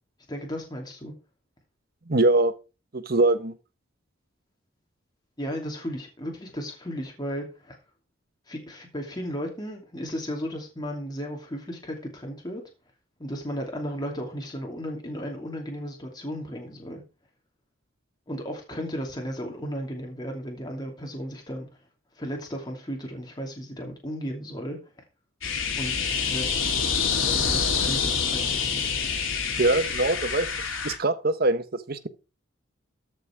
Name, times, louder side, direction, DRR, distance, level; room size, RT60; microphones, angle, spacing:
voice 1, 0.3-1.1 5.4-7.8 8.5-12.6 13.2-17.0 18.3-21.7 22.2-24.8 25.8-26.5 27.2-28.9, equal, 20° left, 2.7 m, -35 dB
voice 2, 2.1-2.5 2.9-3.5 29.6-30.5 30.8-32.1, right 2 dB, 50° right, 1.1 m, -23 dB
sound 1, 25.4-31.0, left 6 dB, 75° left, 3.1 m, -26 dB
13.5 x 6.3 x 4.6 m
head